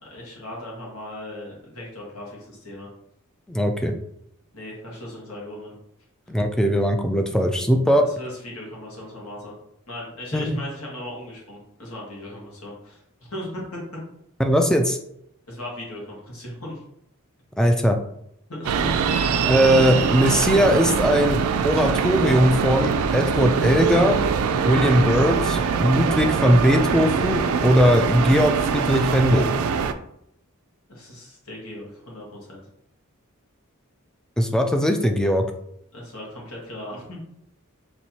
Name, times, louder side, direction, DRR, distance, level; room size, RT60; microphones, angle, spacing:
voice 1, 0.0-2.9 4.5-5.7 8.0-9.5 9.9-13.8 15.5-16.8 18.5-19.0 30.9-32.7 35.9-37.4, left 1 dB, 80° left, -4 dB, 1.6 m, -37 dB
voice 2, 3.5-3.9 6.3-8.0 10.3-10.6 14.4-15.0 17.6-18.0 19.4-24.2 24.7-29.5 34.4-35.4, equal, 5° left, 5 dB, 0.3 m, -19 dB
sound 1, 18.6-29.9, right 6 dB, 80° right, 0.3 m, -23 dB
4.4 x 3.0 x 2.8 m, 0.74 s
head